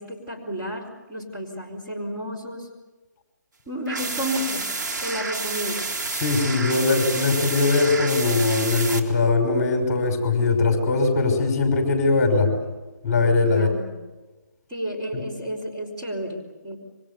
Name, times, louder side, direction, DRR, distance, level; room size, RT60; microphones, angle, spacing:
voice 1, 0.0-2.7 3.7-4.7 5.0-5.8 13.5-14.0 14.7-16.8, equal, 20° right, -2 dB, 4.4 m, -31 dB
sound 1, 3.9-9.0, right 3 dB, 75° right, 3.9 m, -29 dB
voice 2, 6.1-12.5 13.0-13.7 15.1-15.2, left 3 dB, 25° left, 3 dB, 5.7 m, -21 dB
27.5 x 24.5 x 7.0 m, 1.2 s
hypercardioid pair, 160°, 10 cm